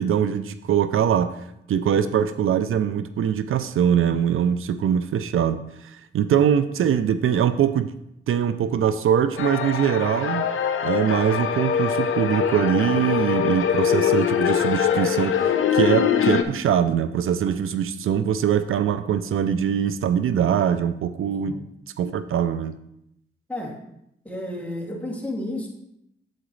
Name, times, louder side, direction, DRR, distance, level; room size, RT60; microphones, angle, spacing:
voice 1, 0.0-1.3 1.7-7.9 8.3-10.5 10.8-21.6 22.0-22.8, right 8 dB, 80° right, 12 dB, 0.5 m, -22 dB
sound 1, 9.4-16.4, left 8 dB, 80° left, 0.7 m, -23 dB
voice 2, 24.2-25.7, left 1 dB, 5° left, -2 dB, 2.4 m, -32 dB
8.7 x 7.9 x 3.2 m, 0.79 s
cardioid pair, 65°, 21 cm